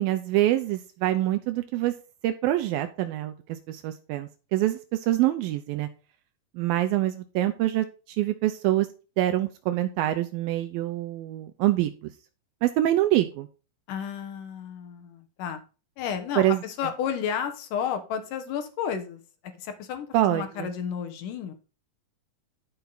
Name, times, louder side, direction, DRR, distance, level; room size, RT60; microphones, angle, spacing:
voice 1, 0.0-1.9 2.2-5.9 6.6-7.9 8.2-8.9 9.2-11.9 12.6-13.5 16.4-16.6 20.1-20.7, right 14 dB, 80° right, 8 dB, 2.4 m, -25 dB
voice 2, 13.9-15.6 16.0-19.2 19.6-21.5, left 8 dB, 65° left, 8 dB, 2.5 m, -32 dB
11.0 x 5.7 x 4.0 m, 0.34 s
omnidirectional pair, 4.3 m